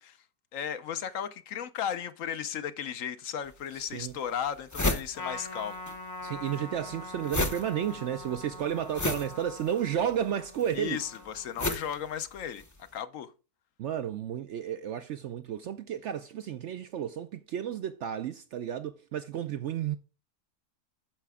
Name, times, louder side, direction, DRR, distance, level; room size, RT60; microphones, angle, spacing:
voice 1, 0.5-5.8 10.7-13.3, left 8 dB, 65° left, 0.9 m, -35 dB
sound 1, 3.5-3.6 4.1-4.2 4.4-6.0 6.2-12.8, left 2 dB, 20° left, 0.4 m, -33 dB
voice 2, 3.8-4.1 6.2-11.0 13.8-20.0, right 9 dB, 65° right, 0.7 m, -32 dB
Trumpet, 5.1-11.8, left 2 dB, 90° left, 2.3 m, -43 dB
9.1 x 6.6 x 3.5 m
omnidirectional pair, 1.6 m